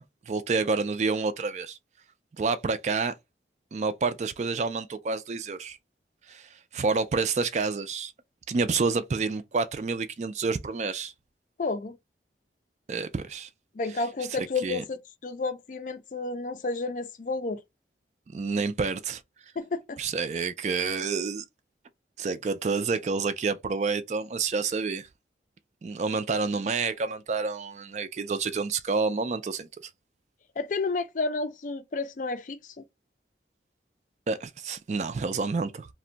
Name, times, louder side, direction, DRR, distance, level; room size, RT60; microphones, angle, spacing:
voice 1, 0.0-1.8 2.4-3.1 3.7-5.8 6.3-8.1 8.5-11.1 12.9-13.5 14.4-14.8 18.3-19.2 20.0-21.4 22.2-25.1 25.8-29.7 34.3-35.9, right 4 dB, 40° right, 0.3 m, -29 dB
voice 2, 11.6-12.0 13.8-17.6 19.6-20.0 30.6-32.6, left 3 dB, 45° left, 0.4 m, -31 dB
2.6 x 2.1 x 3.7 m
head